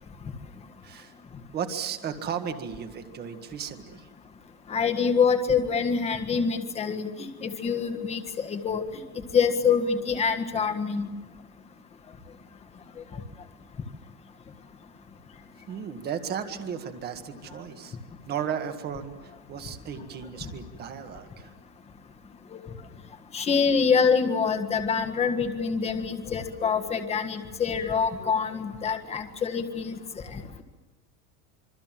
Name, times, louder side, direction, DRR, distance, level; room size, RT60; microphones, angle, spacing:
voice 1, 0.8-1.1 1.5-4.1 15.7-18.0 18.2-21.5 27.6-27.7, right 8 dB, 25° right, 7 dB, 1.7 m, -35 dB
voice 2, 4.7-8.8 9.3-11.1 22.5-22.6 23.3-30.0 30.3-30.6, left 6 dB, 15° left, 6 dB, 1.6 m, -25 dB
26.5 x 25.0 x 7.6 m, 1.2 s
supercardioid pair, 180°, 42 cm